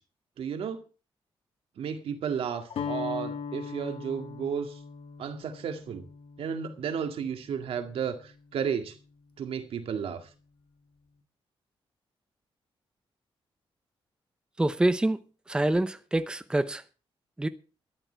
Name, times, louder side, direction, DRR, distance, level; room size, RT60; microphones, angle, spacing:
voice 1, 0.4-0.8 1.8-4.8 5.2-6.1 6.4-8.9 9.4-10.2, right 7 dB, 80° right, 2.1 m, -33 dB
Guitar, 2.7-8.7, left 6 dB, 75° left, 1.8 m, -40 dB
voice 2, 14.6-15.2 15.5-16.8 17.4-17.5, right 1 dB, 10° right, 0.7 m, -26 dB
13.5 x 11.5 x 4.6 m
wide cardioid pair, 135°, 10 cm